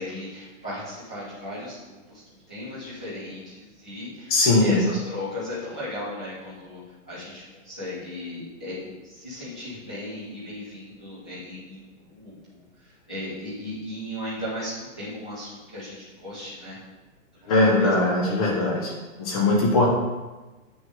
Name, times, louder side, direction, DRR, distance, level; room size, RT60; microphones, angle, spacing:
voice 1, 0.0-16.8 17.3-17.5 17.8-17.9, left 1 dB, 5° left, -12 dB, 0.4 m, -36 dB
voice 2, 4.3-4.8 17.5-18.9 19.2-19.9, left 2 dB, 25° left, -2 dB, 1.6 m, -20 dB
8.0 x 6.4 x 3.8 m, 1.2 s
hypercardioid pair, 170°, 41 cm